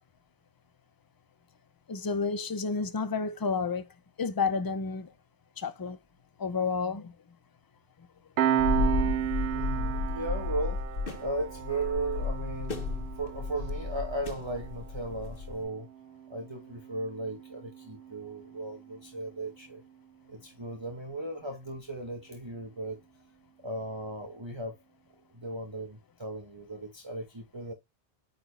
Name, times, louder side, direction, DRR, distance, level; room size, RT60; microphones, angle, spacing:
voice 1, 1.9-3.9 4.2-5.1 5.6-6.0 6.4-7.1, left 4 dB, 25° left, 0.5 m, -30 dB
voice 2, 8.4-9.1 9.5-10.8 11.2-15.9 16.3-19.8 20.3-23.0 23.6-24.8 25.3-27.7, right 2 dB, 25° right, 1.2 m, -36 dB
Piano, 8.4-19.5, right 10 dB, 65° right, 0.8 m, -35 dB
sound 1, 8.6-15.6, left 3 dB, 50° left, 1.5 m, -33 dB
9.0 x 4.1 x 3.3 m
omnidirectional pair, 1.2 m